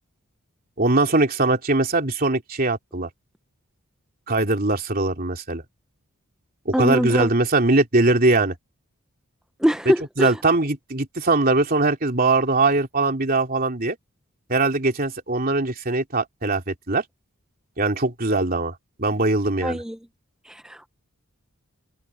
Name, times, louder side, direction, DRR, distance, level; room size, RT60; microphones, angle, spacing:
voice 1, 0.8-3.1 4.3-5.6 6.6-8.5 9.8-14.0 14.5-17.0 17.8-19.8, right 2 dB, 40° right, 3.1 m, -21 dB
voice 2, 6.7-7.3 9.6-10.3 19.6-20.0 20.5-20.9, equal, 5° right, 0.4 m, -23 dB
head